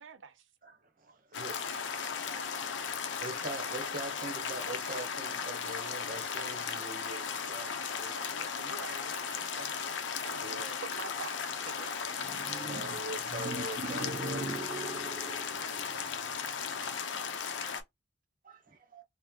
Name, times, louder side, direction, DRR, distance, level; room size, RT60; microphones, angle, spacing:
voice 1, 0.0-0.5 7.6-7.7 8.3-9.8 10.2-12.0, right 5 dB, 85° right, 0.6 m, -47 dB
voice 2, 0.6-2.2 2.5-8.3 10.1-10.8 12.6-14.5 18.4-19.0, right 2 dB, 45° right, 0.8 m, -43 dB
sound 1, 1.3-17.8, left 6 dB, 70° left, 0.5 m, -36 dB
voice 3, 12.2-13.0 13.2-17.0 18.7-18.8, right 3 dB, 25° right, 0.3 m, -42 dB
2.9 x 2.0 x 3.5 m
head